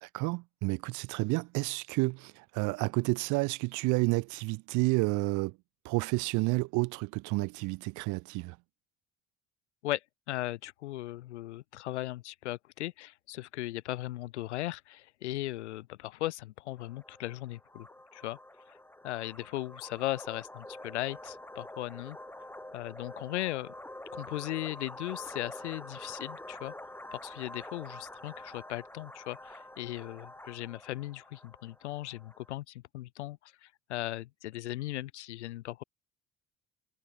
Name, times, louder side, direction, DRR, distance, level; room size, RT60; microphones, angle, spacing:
voice 1, 0.0-5.6 5.8-8.6, right 25 dB, 60° right, 0.6 m, -30 dB
voice 2, 10.3-17.9 18.1-18.4 18.7-18.8 19.0-22.2 22.7-23.7 24.1-26.7 27.1-35.8, left 16 dB, 80° left, 2.0 m, -37 dB
sound 1, 16.8-32.5, left 1 dB, 5° left, 2.6 m, -47 dB
hypercardioid pair, 55°, 34 cm